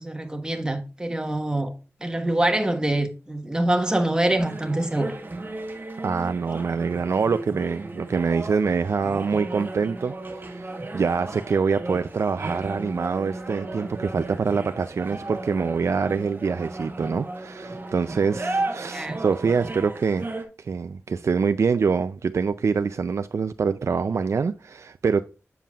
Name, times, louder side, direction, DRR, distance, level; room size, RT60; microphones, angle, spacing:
voice 1, 0.0-1.7 2.0-5.1 18.9-19.2, right 1 dB, 15° right, 1.3 m, -25 dB
sound 1, 4.4-20.5, right 2 dB, 40° right, 1.4 m, -35 dB
voice 2, 6.0-20.3 20.6-25.2, right 5 dB, 70° right, 0.4 m, -25 dB
7.5 x 6.9 x 2.4 m
wide cardioid pair, 85°, 5 cm